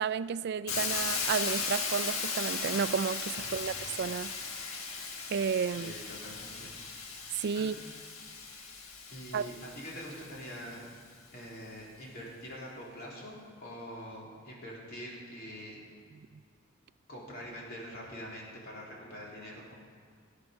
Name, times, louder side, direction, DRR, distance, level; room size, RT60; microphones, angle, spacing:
voice 1, 0.0-4.3 5.3-5.9 7.4-7.7 9.3-9.5, right 6 dB, 55° right, 15 dB, 0.3 m, -32 dB
Hiss, 0.7-10.6, left 5 dB, 90° left, 1.5 m, -37 dB
voice 2, 3.3-3.9 5.6-6.7 7.5-8.0 8.6-8.7 9.1-10.8 11.3-15.8 17.1-19.7, equal, 50° left, -4 dB, 3.3 m, -45 dB
17.0 x 8.3 x 6.5 m, 2.1 s
head